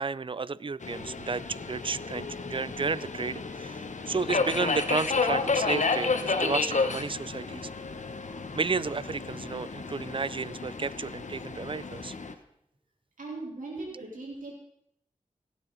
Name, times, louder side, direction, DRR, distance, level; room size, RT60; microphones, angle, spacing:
voice 1, 0.0-7.7 8.5-12.2 13.9-14.0, right 4 dB, 40° right, 20 dB, 0.4 m, -32 dB
Subway metro underground, 0.8-12.3, left 4 dB, 65° left, 1.1 m, -31 dB
voice 2, 13.2-14.6, right 2 dB, 85° right, -3 dB, 4.0 m, -39 dB
17.0 x 9.0 x 4.1 m, 0.74 s
cardioid pair, 50°, 13 cm